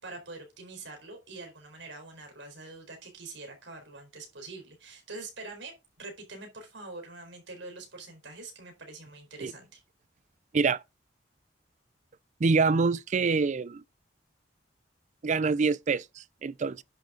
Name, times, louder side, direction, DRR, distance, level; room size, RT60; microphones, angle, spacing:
voice 1, 0.0-9.8, right 3 dB, 80° right, 4.4 m, -45 dB
voice 2, 12.4-13.8 15.2-16.8, right 4 dB, 40° right, 0.4 m, -26 dB
10.5 x 6.4 x 3.8 m
head